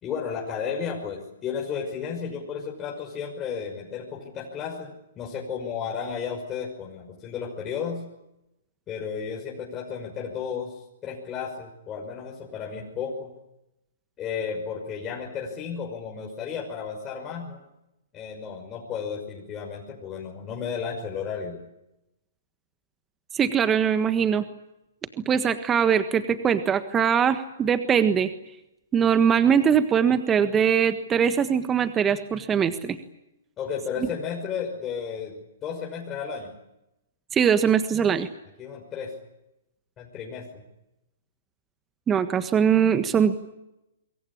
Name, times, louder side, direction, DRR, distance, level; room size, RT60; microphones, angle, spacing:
voice 1, 0.0-8.0 8.9-13.3 14.2-17.6 18.1-21.6 33.6-36.5 38.6-39.1 40.0-40.6, left 6 dB, 25° left, -1 dB, 6.0 m, -33 dB
voice 2, 23.3-24.4 25.2-28.3 28.9-33.0 37.3-38.3 42.1-43.4, right 7 dB, 20° right, 10 dB, 1.4 m, -21 dB
27.0 x 23.0 x 8.7 m, 0.89 s
hypercardioid pair, 130°, 0 cm